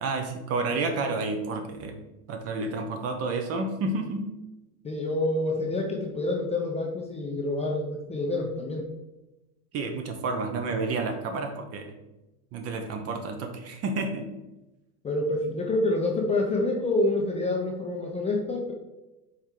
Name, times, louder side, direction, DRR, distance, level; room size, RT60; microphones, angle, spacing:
voice 1, 0.0-2.0 2.3-4.3 9.7-11.9 12.5-14.3, right 3 dB, 30° right, 5 dB, 0.6 m, -30 dB
voice 2, 4.8-8.9 15.0-18.7, left 2 dB, 15° left, 0 dB, 0.5 m, -27 dB
4.7 x 3.1 x 3.7 m, 1.0 s
hypercardioid pair, 100°, 46 cm